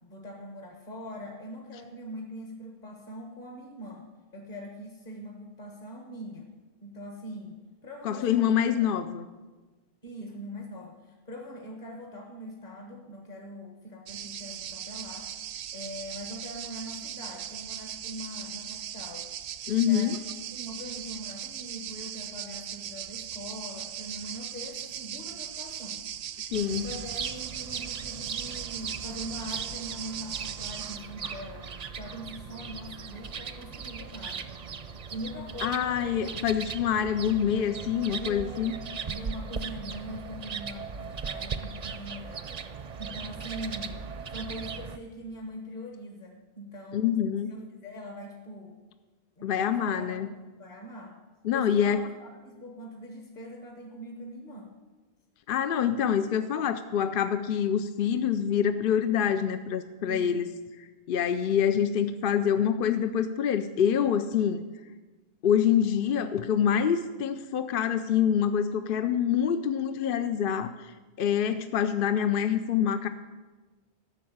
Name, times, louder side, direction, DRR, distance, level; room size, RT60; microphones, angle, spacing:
voice 1, 0.0-4.1 4.3-6.5 6.8-8.9 10.0-15.3 15.7-19.3 19.8-20.2 20.5-26.0 26.7-31.7 31.9-34.5 35.1-36.2 38.2-42.5 43.0-44.0 44.3-47.1 47.5-48.8 49.4-50.3 50.5-51.1 51.5-54.7 60.1-60.4, equal, 40° left, 2 dB, 1.6 m, -42 dB
voice 2, 8.0-9.3 19.7-20.2 26.5-26.9 35.6-38.7 46.9-47.6 49.4-50.3 51.4-52.0 55.5-60.5 60.8-64.6 65.4-73.1, left 8 dB, 60° left, 10 dB, 0.7 m, -26 dB
sound 1, 14.1-31.0, right 10 dB, 75° right, 0.8 m, -39 dB
sound 2, 26.5-45.0, right 5 dB, 45° right, 0.6 m, -38 dB
13.5 x 6.4 x 8.6 m, 1.3 s
omnidirectional pair, 1.1 m